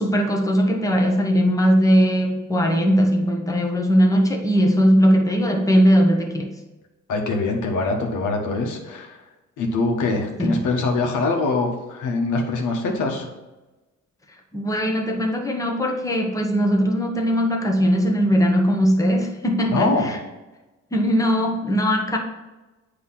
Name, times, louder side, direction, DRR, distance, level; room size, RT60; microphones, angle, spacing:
voice 1, 0.0-6.5 10.4-10.6 14.5-20.2 20.9-22.2, equal, 10° left, 1 dB, 1.1 m, -19 dB
voice 2, 7.1-9.2 9.6-13.3 19.7-20.1, left 3 dB, 80° left, 2 dB, 1.3 m, -23 dB
8.0 x 3.2 x 5.8 m, 1.1 s
cardioid pair, 90°, 30 cm